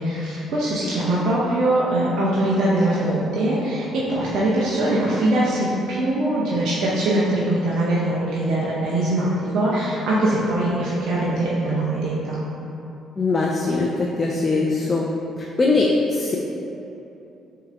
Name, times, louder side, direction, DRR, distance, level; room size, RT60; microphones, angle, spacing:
voice 1, 0.0-12.4, right 1 dB, 65° right, -7 dB, 0.6 m, -22 dB
voice 2, 13.2-15.0 15.4-16.4, left 3 dB, 35° left, -2 dB, 0.5 m, -21 dB
6.6 x 2.8 x 2.5 m, 2.9 s
hypercardioid pair, 55°, 0 cm